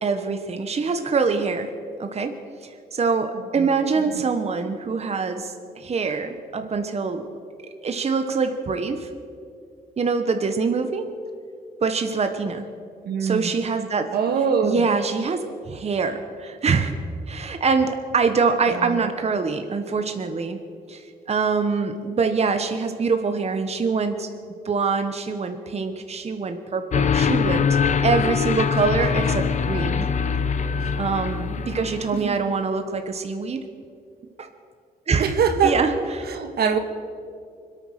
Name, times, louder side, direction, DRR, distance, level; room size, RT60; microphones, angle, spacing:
voice 1, 0.0-1.7 2.0-2.3 2.6-7.3 7.8-9.1 10.0-11.1 11.8-12.7 13.2-14.0 14.6-16.9 17.3-20.6 20.9-24.3 24.6-30.1 31.0-33.6 34.4-34.5 35.1-35.3 35.6-36.2, right 4 dB, 40° right, 7 dB, 1.1 m, -24 dB
voice 2, 3.3-3.7 3.9-4.2 13.0-13.5 14.1-14.8 18.7-19.0 30.8-30.9 32.1-32.4 35.2-35.8 36.2-36.8, right 6 dB, 75° right, 6 dB, 1.6 m, -24 dB
sound 1, 26.9-32.3, left 6 dB, 50° left, 0.7 m, -23 dB
24.5 x 9.0 x 6.4 m, 2.4 s
cardioid pair, 90°, 16 cm